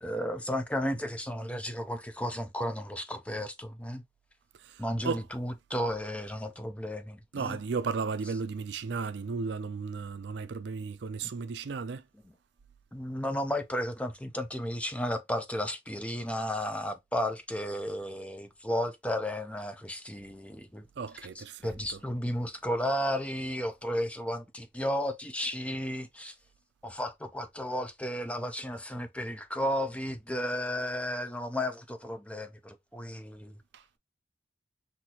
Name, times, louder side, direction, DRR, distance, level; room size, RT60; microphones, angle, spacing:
voice 1, 0.0-4.0 4.8-7.6 11.2-11.3 12.2-12.3 12.9-20.9 21.3-26.3 26.8-33.6, equal, 5° left, 0.5 m, -33 dB
voice 2, 4.6-5.2 7.3-12.0 21.0-21.7 33.7-33.8, right 5 dB, 65° right, 0.4 m, -34 dB
5.9 x 2.7 x 2.8 m
head